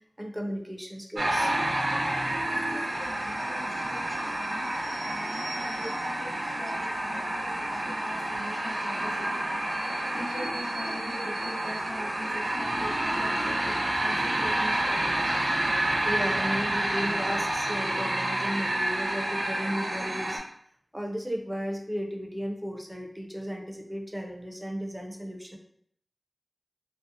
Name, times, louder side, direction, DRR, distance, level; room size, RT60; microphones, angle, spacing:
voice 1, 0.2-1.5 3.7-4.2 5.3-5.4 16.0-20.4 20.9-25.6, equal, 10° right, 1 dB, 0.5 m, -35 dB
sound 1, 1.1-20.4, right 1 dB, 80° right, 0.5 m, -29 dB
voice 2, 2.6-9.7 10.1-15.2, equal, 55° left, -7 dB, 0.7 m, -43 dB
2.6 x 2.0 x 2.6 m, 0.66 s
wide cardioid pair, 45°, 0 cm